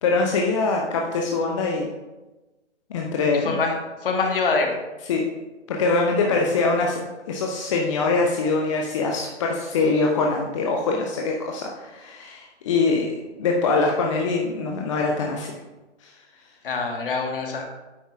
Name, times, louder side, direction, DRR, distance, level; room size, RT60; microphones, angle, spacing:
voice 1, 0.0-1.9 2.9-3.6 5.1-5.2 5.7-7.0 7.3-13.1 13.4-15.5 16.0-16.1, left 3 dB, 25° left, 0 dB, 0.6 m, -23 dB
voice 2, 3.3-4.7 6.2-6.4 16.6-17.7, left 4 dB, 50° left, 2 dB, 1.5 m, -25 dB
9.6 x 7.9 x 2.4 m, 1.1 s
figure-of-eight pair, 130°, 35 cm